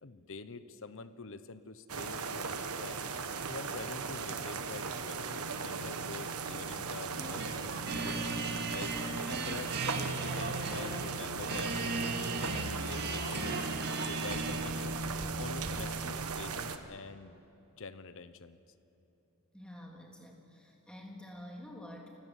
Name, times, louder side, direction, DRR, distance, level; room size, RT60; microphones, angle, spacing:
voice 1, 0.0-3.0 3.5-8.1 8.7-11.8 12.6-13.7 14.1-15.0 15.4-17.4 17.8-18.6, left 4 dB, 60° left, 13 dB, 1.0 m, -46 dB
sound 1, 1.9-16.8, right 4 dB, 85° right, 1.3 m, -37 dB
sound 2, 7.2-15.1, right 3 dB, 50° right, 2.1 m, -37 dB
voice 2, 19.5-22.1, left 1 dB, 5° left, 0 dB, 3.2 m, -48 dB
29.0 x 16.5 x 8.4 m, 2.9 s
head